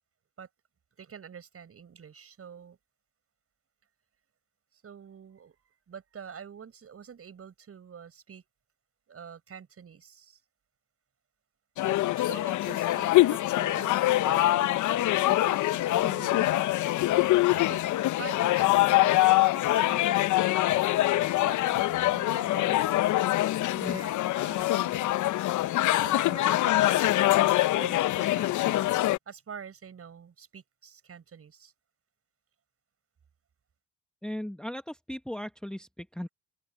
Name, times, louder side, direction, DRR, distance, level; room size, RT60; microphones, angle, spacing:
voice 1, 1.0-2.8 4.8-8.4 9.1-10.4 11.8-16.7 17.5-17.8 18.1-20.7 21.3-22.9 23.9-25.6 26.0-28.9 29.3-31.7, right 7 dB, 45° right, 7.3 m, -46 dB
sound 1, 11.8-29.2, left 15 dB, 60° left, 0.9 m, -24 dB
voice 2, 34.2-36.3, equal, ahead, 1.1 m, -37 dB
supercardioid pair, 75°, 33 cm